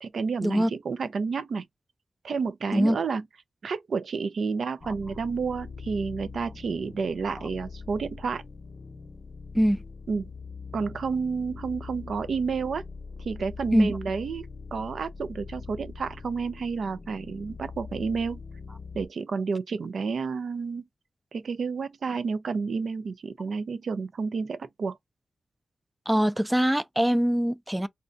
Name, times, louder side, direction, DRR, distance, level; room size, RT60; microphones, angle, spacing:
voice 1, 0.0-1.7 2.2-3.2 3.6-8.4 10.1-10.3 10.7-12.8 13.2-18.4 18.9-20.8 21.3-25.0, right 5 dB, 85° right, 0.4 m, -30 dB
sound 1, 4.8-19.1, left 4 dB, 55° left, 0.7 m, -42 dB
voice 2, 26.1-27.9, equal, 10° right, 0.3 m, -23 dB
2.6 x 2.1 x 3.7 m
cardioid pair, 70°, 0 cm